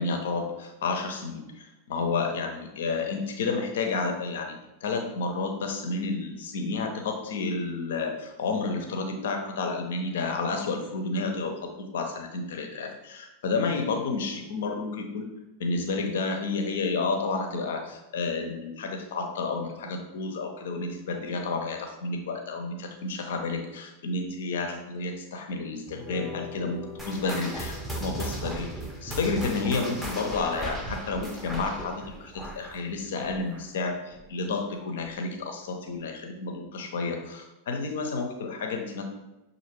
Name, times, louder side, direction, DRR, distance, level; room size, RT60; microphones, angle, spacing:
voice 1, 0.0-15.3 15.6-28.7 29.0-39.0, left 3 dB, 60° left, 4 dB, 0.7 m, -31 dB
sound 1, 25.9-33.6, left 3 dB, 30° left, 0.9 m, -46 dB
sound 2, 27.0-33.8 34.1-34.4 35.0-35.1 35.9-36.0, right 1 dB, 5° right, 0.8 m, -37 dB
6.4 x 2.6 x 3.0 m, 0.98 s
figure-of-eight pair, 90°, 0 cm